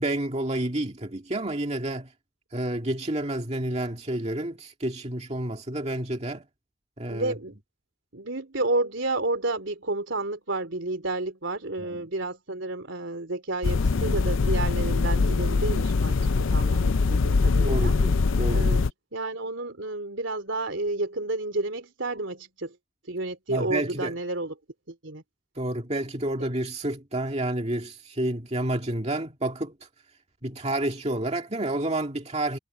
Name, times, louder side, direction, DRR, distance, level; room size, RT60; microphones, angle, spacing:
voice 1, 0.0-2.1 2.5-6.4 7.0-7.3 11.8-12.1 17.7-18.7 23.5-24.1 25.6-29.7 30.4-32.6, right 1 dB, 30° right, 2.2 m, -29 dB
voice 2, 7.1-7.6 8.1-16.2 16.5-17.9 18.5-18.8 19.1-22.8 23.1-24.5 24.9-25.2, right 2 dB, 65° right, 3.7 m, -31 dB
sound 1, 13.6-18.9, left 4 dB, 75° left, 0.5 m, -23 dB
head